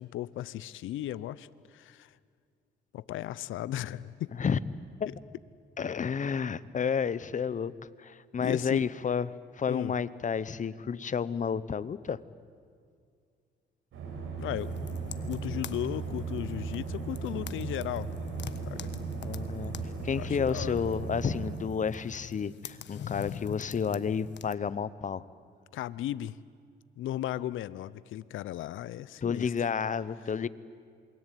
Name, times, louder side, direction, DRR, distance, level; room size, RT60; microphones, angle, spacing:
voice 1, 0.0-1.5 1.7-2.1 2.9-4.3 8.4-8.9 9.7-9.9 14.4-14.7 15.3-18.1 18.6-18.9 20.2-20.8 25.7-26.3 27.0-29.5, left 13 dB, 80° left, 18 dB, 0.8 m, -36 dB
voice 2, 5.8-7.7 8.0-12.2 19.2-19.7 20.0-25.2 29.2-30.5, left 6 dB, 40° left, 17 dB, 1.0 m, -31 dB
sound 1, 13.9-21.6, right 5 dB, 80° right, 6.6 m, -37 dB
sound 2, 14.6-24.5, left 9 dB, 65° left, 1.4 m, -45 dB
sound 3, 14.9-15.8 16.1-18.9 19.2-20.4 20.7-21.1, right 1 dB, 5° right, 5.5 m, -47 dB
28.0 x 22.5 x 9.3 m, 2.2 s
cardioid pair, 90°, 20 cm